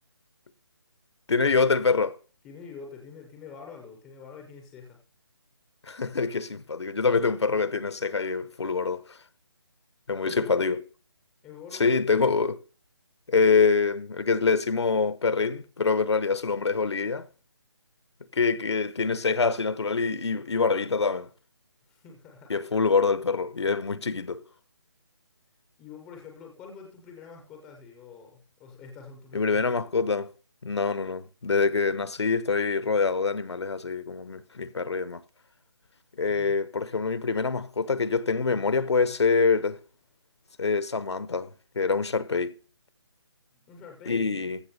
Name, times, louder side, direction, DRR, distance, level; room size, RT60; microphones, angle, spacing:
voice 1, 1.3-2.2 5.9-9.0 10.1-10.8 11.8-12.6 13.3-17.2 18.3-21.3 22.5-24.4 29.3-30.3 30.6-35.2 36.2-39.8 40.6-41.5 41.7-42.6 44.1-44.6, left 4 dB, 85° left, 1.0 m, -25 dB
voice 2, 2.4-5.0 10.2-10.7 11.4-11.9 21.8-22.7 25.8-30.1 43.5-44.3, left 5 dB, 5° left, 0.4 m, -46 dB
14.5 x 5.8 x 6.7 m
hypercardioid pair, 175°, 14 cm